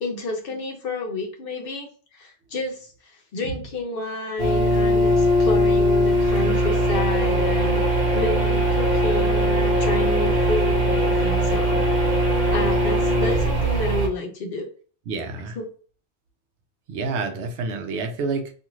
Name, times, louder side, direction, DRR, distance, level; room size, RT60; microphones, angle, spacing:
voice 1, 0.0-1.9 2.1-7.8 8.1-11.8 12.5-14.7 15.5-15.7, left 2 dB, 60° left, 3 dB, 0.8 m, -30 dB
sound 1, 4.4-14.1, equal, 45° right, 0.8 m, -20 dB
voice 2, 15.1-15.6 16.9-18.5, right 4 dB, 80° right, 5 dB, 0.9 m, -28 dB
2.6 x 2.5 x 3.0 m, 0.41 s
omnidirectional pair, 1.1 m